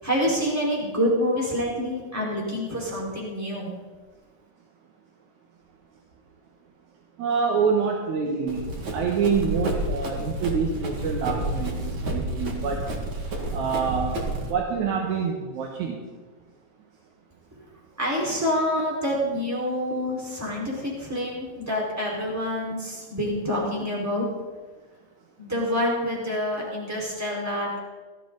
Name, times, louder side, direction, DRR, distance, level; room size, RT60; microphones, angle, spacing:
voice 1, 0.0-3.7 18.0-24.3 25.4-27.8, equal, 5° right, -5 dB, 4.4 m, -27 dB
voice 2, 7.2-8.6 8.9-12.9 13.5-14.1 14.5-16.0, right 6 dB, 80° right, 0 dB, 2.8 m, -26 dB
Run, 8.5-14.5, right 1 dB, 45° right, 2.7 m, -30 dB
19.0 x 13.5 x 4.0 m, 1.3 s
omnidirectional pair, 3.3 m